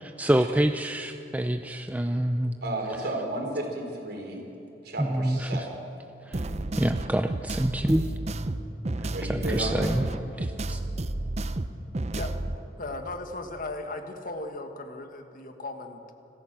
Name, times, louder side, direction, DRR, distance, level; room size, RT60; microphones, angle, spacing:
voice 1, 0.0-2.5 5.0-5.7 6.3-6.4 6.8-8.1 9.3-10.0 10.4-10.8, right 1 dB, 10° right, 7 dB, 0.5 m, -26 dB
voice 2, 2.6-4.4 4.8-5.8 9.1-9.9, right 1 dB, 65° right, 1 dB, 4.1 m, -33 dB
sound 1, 6.3-12.6, right 2 dB, 40° right, 0.8 m, -32 dB
voice 3, 12.8-16.1, left 2 dB, 50° left, 6 dB, 1.6 m, -37 dB
26.5 x 15.0 x 7.5 m, 3.0 s
head